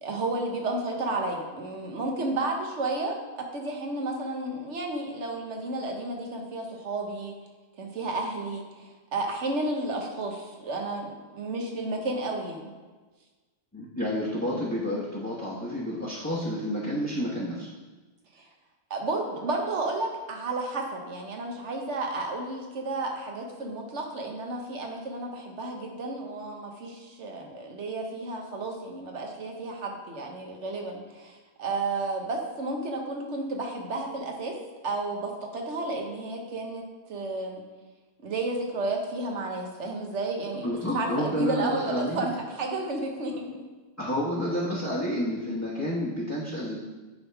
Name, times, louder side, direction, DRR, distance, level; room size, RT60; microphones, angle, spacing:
voice 1, 0.0-3.2 3.5-7.3 7.8-12.7 18.4-18.5 18.9-34.5 34.8-36.8 37.1-37.6 38.2-43.5, right 2 dB, 85° right, 1 dB, 1.4 m, -32 dB
voice 2, 13.7-17.7 40.6-42.3 44.0-46.8, equal, 15° left, -7 dB, 1.0 m, -30 dB
9.7 x 3.6 x 4.6 m, 1.3 s
omnidirectional pair, 1.2 m